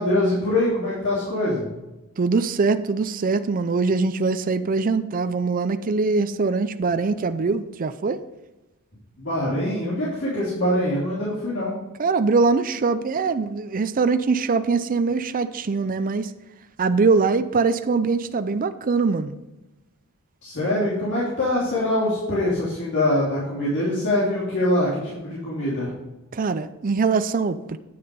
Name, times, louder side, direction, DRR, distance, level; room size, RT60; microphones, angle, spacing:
voice 1, 0.0-1.7 9.2-11.7 20.4-25.9, left 1 dB, 55° left, -8 dB, 3.0 m, -23 dB
voice 2, 2.2-8.2 12.0-16.3 16.8-19.4 26.3-27.8, right 4 dB, 40° right, 10 dB, 0.5 m, -22 dB
9.5 x 6.8 x 5.3 m, 1.0 s
head